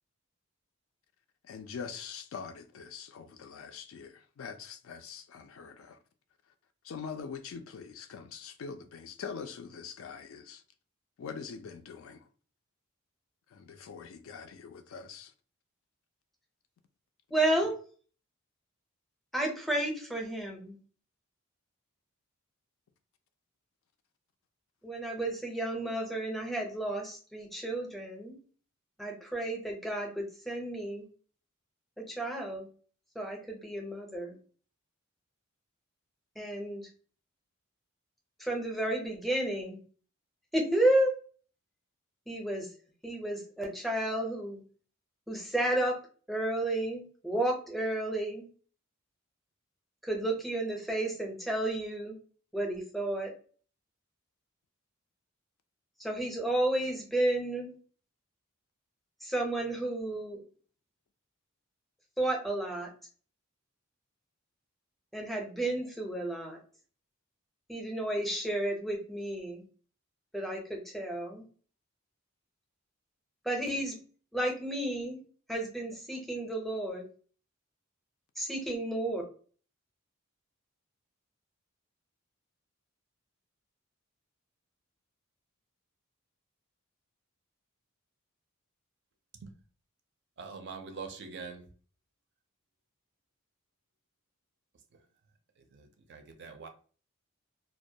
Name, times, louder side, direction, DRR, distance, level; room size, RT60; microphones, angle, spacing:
voice 1, 1.4-6.0 6.8-10.6 11.2-12.3 13.5-15.3, left 6 dB, 70° left, 0.3 m, -43 dB
voice 2, 17.3-17.8 19.3-20.7 24.8-28.3 29.0-31.0 32.1-32.7 33.2-34.3 36.4-36.9 38.4-39.8 40.5-41.1 42.3-42.7 43.0-44.6 45.3-46.0 46.3-48.4 50.0-52.2 52.5-53.3 56.0-57.7 59.2-60.4 62.2-62.9 65.1-66.6 67.7-69.6 70.3-71.4 73.5-73.9 74.3-75.2 75.5-77.0 78.4-79.2, right 1 dB, ahead, 0.5 m, -32 dB
voice 3, 90.4-91.7 95.7-96.7, right 5 dB, 55° right, 0.4 m, -44 dB
2.2 x 2.1 x 2.6 m
head